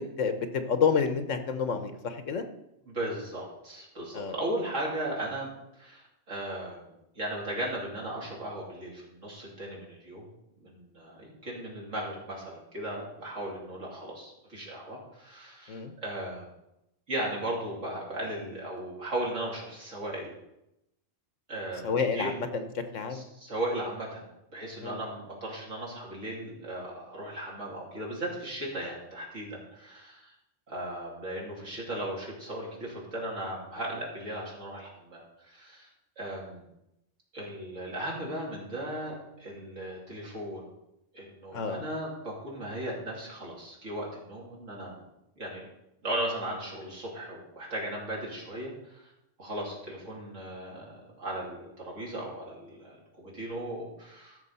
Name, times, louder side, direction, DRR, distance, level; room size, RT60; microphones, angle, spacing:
voice 1, 0.0-2.5 4.1-4.3 15.7-15.9 21.8-23.2 24.8-25.0 41.5-41.8, left 5 dB, 70° left, 8 dB, 1.3 m, -29 dB
voice 2, 2.8-10.3 10.6-16.5 17.1-20.3 21.5-22.3 23.1-30.3 30.7-35.9 36.2-36.6 37.3-40.7 41.1-45.0 45.4-45.7 46.0-49.1 49.4-54.4, right 1 dB, 70° right, -3 dB, 3.4 m, -37 dB
13.5 x 6.4 x 5.5 m, 0.87 s
omnidirectional pair, 1.3 m